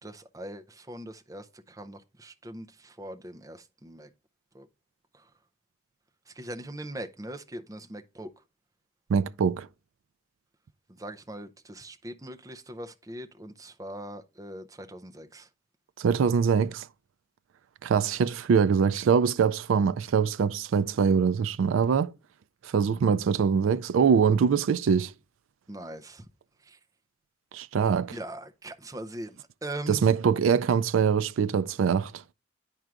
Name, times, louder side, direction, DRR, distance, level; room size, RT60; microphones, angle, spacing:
voice 1, 0.0-4.1 4.5-4.7 5.1-5.3 6.3-8.4 10.9-15.5 25.7-26.3 26.6-26.8 28.1-30.1, right 1 dB, 15° right, 0.5 m, -41 dB
voice 2, 9.1-9.7 16.0-16.9 17.8-22.1 22.6-25.1 27.5-28.1 29.9-32.2, right 6 dB, 80° right, 0.3 m, -23 dB
10.5 x 4.5 x 2.4 m
head